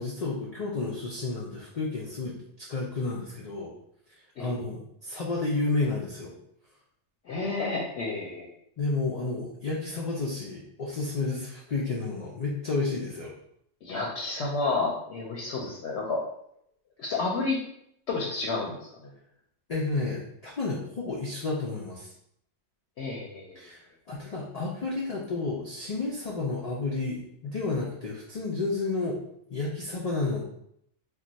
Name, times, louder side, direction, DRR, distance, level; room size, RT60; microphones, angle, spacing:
voice 1, 0.0-3.7 4.4-6.3 8.8-13.3 19.7-22.1 23.6-23.8 24.1-29.2 29.5-30.4, left 3 dB, 85° left, -3 dB, 0.3 m, -31 dB
voice 2, 7.3-8.5 13.8-16.2 17.0-17.6 18.1-18.9 23.0-23.6, left 3 dB, 65° left, -2 dB, 0.8 m, -30 dB
2.3 x 2.2 x 3.9 m, 0.73 s
omnidirectional pair, 1.3 m